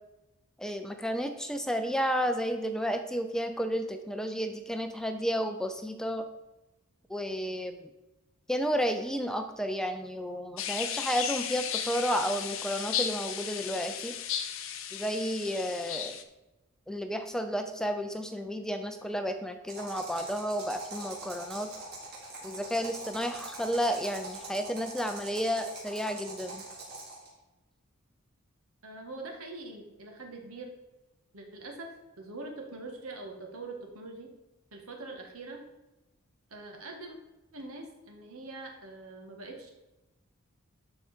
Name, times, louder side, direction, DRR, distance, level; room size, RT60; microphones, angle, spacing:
voice 1, 0.6-6.3 7.1-7.9 8.5-14.2 14.9-16.2 16.9-21.7 22.4-26.6, equal, 5° left, 7 dB, 0.5 m, -32 dB
sound 1, 10.6-16.2, left 9 dB, 70° left, 0.8 m, -35 dB
sound 2, 19.7-27.3, right 2 dB, 50° right, 3.3 m, -43 dB
voice 2, 28.8-30.7 31.3-34.3 34.7-35.6 36.5-37.2 37.5-39.7, right 2 dB, 85° right, 2 dB, 1.8 m, -43 dB
12.0 x 4.8 x 4.4 m, 1.0 s
head